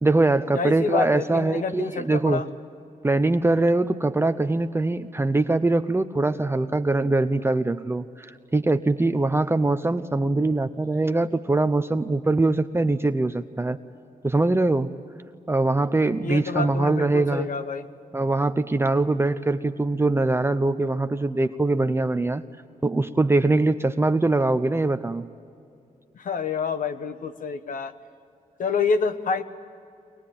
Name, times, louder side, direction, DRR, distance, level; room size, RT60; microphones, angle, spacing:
voice 1, 0.0-2.4 3.0-13.8 14.2-14.9 15.5-17.5 18.1-22.4 22.8-25.3, right 2 dB, 15° right, 10 dB, 0.7 m, -22 dB
voice 2, 0.5-2.5 16.2-17.9 26.2-27.9 28.6-29.4, left 5 dB, 70° left, 11 dB, 1.3 m, -27 dB
23.0 x 21.0 x 8.7 m, 2.6 s
cardioid pair, 85°, 14 cm